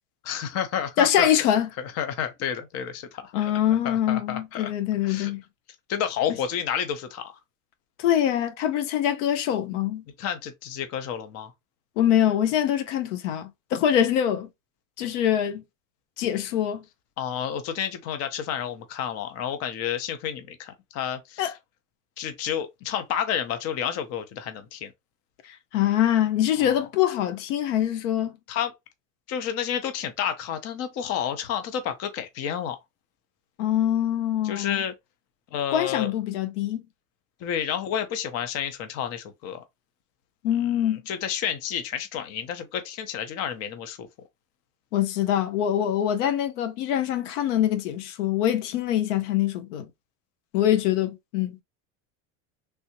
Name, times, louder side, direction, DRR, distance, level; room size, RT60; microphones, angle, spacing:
voice 1, 0.2-1.3 1.8-3.5 3.8-4.7 5.0-5.3 5.9-7.3 10.2-11.5 17.2-21.5 22.2-24.9 26.6-26.9 28.5-28.7 29.3-32.8 34.4-34.9 35.5-36.1 37.4-39.6 40.6-44.1, left 9 dB, 45° left, 0.7 m, -30 dB
voice 2, 1.0-1.7 3.3-5.4 8.0-10.0 12.0-14.5 15.0-15.6 16.2-16.8 21.4-21.5 25.5-28.4 33.6-34.8 35.7-36.8 40.4-41.0 44.9-49.9 50.5-51.6, left 11 dB, 85° left, 0.7 m, -24 dB
3.4 x 2.6 x 2.8 m
supercardioid pair, 145°, 36 cm